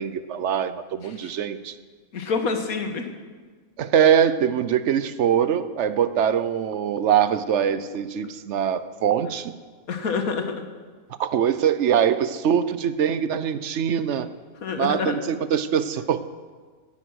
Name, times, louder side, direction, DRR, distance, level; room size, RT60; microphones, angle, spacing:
voice 1, 0.0-1.8 3.8-9.5 11.2-14.3 14.8-16.2, right 8 dB, 60° right, 13 dB, 0.9 m, -23 dB
voice 2, 2.1-3.1 9.9-10.6 14.6-15.2, left 5 dB, 85° left, 6 dB, 1.8 m, -27 dB
18.0 x 10.0 x 6.3 m, 1.5 s
omnidirectional pair, 1.5 m